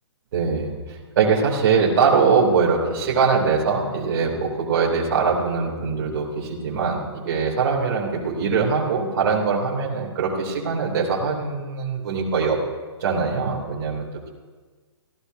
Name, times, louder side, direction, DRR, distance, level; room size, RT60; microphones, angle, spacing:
voice 1, 0.3-12.6 13.0-14.1, right 5 dB, 45° right, -5 dB, 2.7 m, -22 dB
26.0 x 15.0 x 2.7 m, 1.4 s
hypercardioid pair, 160°, 14 cm